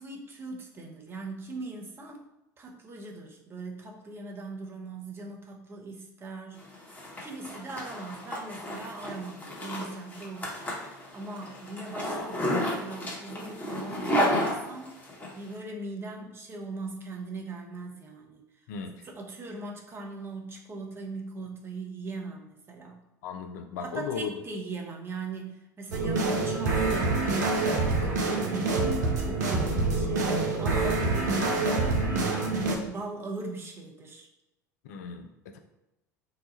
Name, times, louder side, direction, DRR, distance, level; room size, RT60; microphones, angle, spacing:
voice 1, 0.0-2.2 2.6-6.9 7.2-15.0 15.3-18.4 19.0-23.0 23.8-30.3 30.6-34.3, right 3 dB, 25° right, 1 dB, 0.7 m, -40 dB
Zipper (clothing), 6.6-15.3, equal, 20° left, 1.0 m, -32 dB
voice 2, 18.7-19.1 23.2-24.3 34.8-35.6, left 6 dB, 65° left, 5 dB, 0.4 m, -36 dB
sound 1, 25.9-32.8, right 3 dB, 75° right, 0.6 m, -26 dB
2.8 x 2.2 x 4.1 m, 0.94 s
figure-of-eight pair, 70°, 10 cm